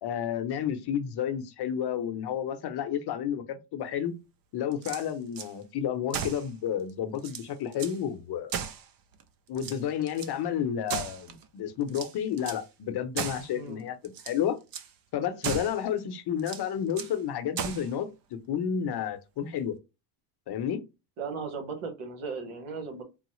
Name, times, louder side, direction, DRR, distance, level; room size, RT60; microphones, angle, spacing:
voice 1, 0.0-4.1 4.5-8.6 9.5-14.6 15.1-19.8 20.5-20.8, left 9 dB, 50° left, 0.8 m, -31 dB
sound 1, 4.7-5.5 6.1-6.5 6.9-7.0 7.2-8.0 8.5-9.2 9.5-10.3 10.9-11.5 11.9-12.7 13.2-13.5 14.0-14.4 14.7-14.9 15.4-15.8 16.4-17.2 17.6-17.9, right 7 dB, 45° right, 0.6 m, -36 dB
voice 2, 21.2-23.0, right 5 dB, 75° right, 1.3 m, -36 dB
3.8 x 2.0 x 3.0 m
supercardioid pair, 95°, 49 cm